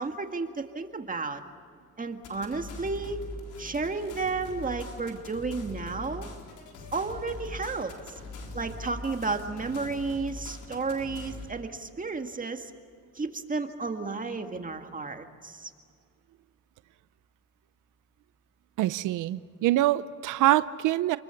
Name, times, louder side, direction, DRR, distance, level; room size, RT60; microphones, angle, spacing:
voice 1, 0.0-1.4 2.0-3.2 3.6-6.3 6.9-8.2 8.5-12.7 13.2-15.7, right 4 dB, 25° right, 6 dB, 1.9 m, -32 dB
sound 1, 2.2-11.5, left 2 dB, 85° left, 4.0 m, -42 dB
voice 2, 18.8-21.2, right 15 dB, 85° right, 15 dB, 0.7 m, -25 dB
29.0 x 21.5 x 7.1 m, 2.2 s
cardioid pair, 90°, 30 cm